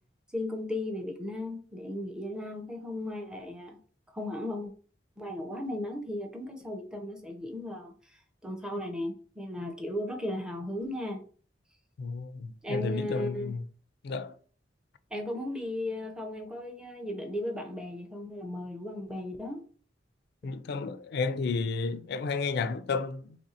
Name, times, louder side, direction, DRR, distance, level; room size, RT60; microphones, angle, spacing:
voice 1, 0.3-3.8 4.1-4.7 5.2-7.9 8.4-11.2 12.6-13.6 15.1-19.6, left 1 dB, 5° right, 0.5 m, -36 dB
voice 2, 12.0-13.6 14.0-14.3 20.4-23.4, left 4 dB, 60° left, 0.3 m, -32 dB
3.1 x 2.5 x 4.1 m
head